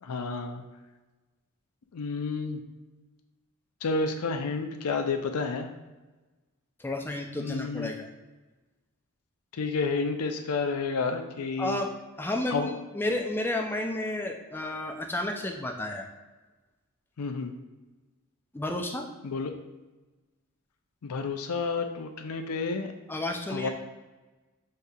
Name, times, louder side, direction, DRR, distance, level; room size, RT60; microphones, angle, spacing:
voice 1, 0.0-0.6 1.9-2.6 3.8-5.7 7.4-7.9 9.5-11.8 12.5-12.7 17.2-17.5 19.2-19.5 21.0-22.9 23.5-23.7, left 4 dB, 80° left, 5 dB, 0.5 m, -30 dB
voice 2, 6.8-8.1 11.6-16.1 18.5-19.1 23.1-23.7, left 1 dB, 10° left, 2 dB, 0.3 m, -32 dB
6.4 x 2.7 x 2.3 m, 1.2 s
head